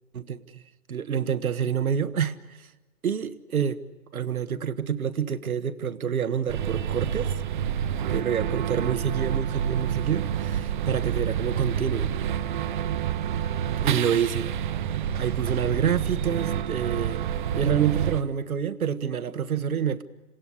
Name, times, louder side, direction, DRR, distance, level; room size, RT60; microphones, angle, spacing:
voice 1, 0.1-0.6 0.9-2.7 3.0-3.8 4.1-7.3 8.1-12.1 13.8-14.5 15.1-17.2 17.5-20.0, right 8 dB, 75° right, 1.5 m, -27 dB
sound 1, 6.5-18.2, right 9 dB, 35° right, 0.8 m, -28 dB
27.5 x 17.0 x 9.8 m
hypercardioid pair, 145°, 43 cm